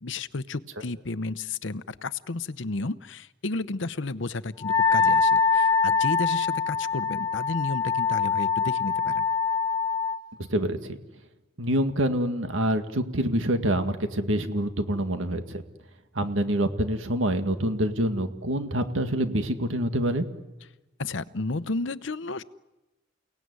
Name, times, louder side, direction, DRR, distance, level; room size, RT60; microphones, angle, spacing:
voice 1, 0.0-9.2 21.0-22.4, left 3 dB, 70° left, 15 dB, 0.8 m, -32 dB
Wind instrument woodwind instrument, 4.6-10.2, left 5 dB, 20° left, 0.9 m, -24 dB
voice 2, 10.4-11.0 11.6-15.6 16.2-20.3, right 1 dB, 85° right, 7 dB, 2.0 m, -26 dB
30.0 x 18.5 x 9.6 m, 1.1 s
head